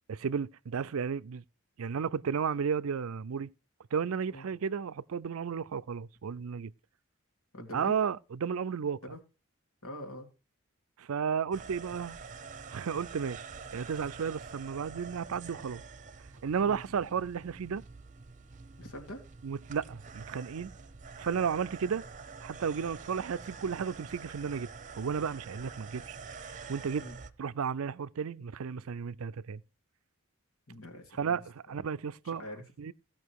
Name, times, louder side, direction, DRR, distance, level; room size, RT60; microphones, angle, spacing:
voice 1, 0.1-1.4 1.8-3.5 3.9-6.7 7.7-9.0 11.0-12.2 12.7-13.5 13.7-15.8 16.4-17.8 19.4-20.7 21.2-22.0 22.4-24.7 24.9-26.2 26.7-27.1 27.4-29.6 31.2-32.4 32.8-32.9, right 6 dB, 70° right, 0.4 m, -33 dB
voice 2, 7.5-7.9 9.1-9.2 9.8-10.3 16.6-16.8 18.8-19.2 21.8-22.0 27.0-27.2 30.7-31.4 32.2-32.6, equal, 80° left, 2.5 m, -44 dB
sound 1, 11.5-27.3, right 5 dB, 35° right, 0.8 m, -47 dB
16.0 x 5.9 x 4.7 m
head